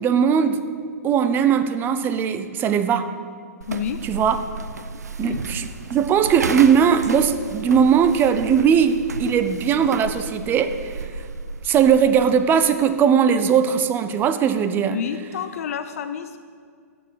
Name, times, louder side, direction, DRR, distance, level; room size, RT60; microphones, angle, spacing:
voice 1, 0.0-0.7 1.0-3.1 4.0-4.4 5.2-5.7 5.9-10.9 11.6-15.0, right 7 dB, 25° right, 10 dB, 0.7 m, -19 dB
sound 1, 3.6-12.5, right 4 dB, 80° right, 0.8 m, -33 dB
voice 2, 3.7-4.0 5.2-5.4 14.8-16.4, left 8 dB, 60° left, 10 dB, 0.6 m, -29 dB
14.0 x 7.1 x 6.4 m, 2.1 s
hypercardioid pair, 120°, 9 cm